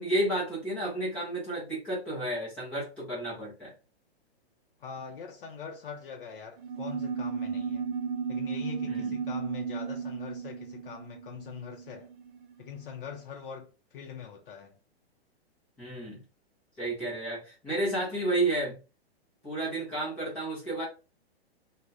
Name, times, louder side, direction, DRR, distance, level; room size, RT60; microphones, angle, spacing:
voice 1, 0.0-3.7 8.8-9.2 15.8-16.2 16.8-18.8 19.4-20.8, right 1 dB, 5° left, 0.3 m, -31 dB
voice 2, 4.8-7.9 8.3-12.1 12.6-14.8, left 7 dB, 55° left, 0.5 m, -43 dB
sound 1, 6.6-12.5, right 6 dB, 50° right, 0.5 m, -34 dB
3.4 x 2.1 x 2.4 m
hypercardioid pair, 160°, 32 cm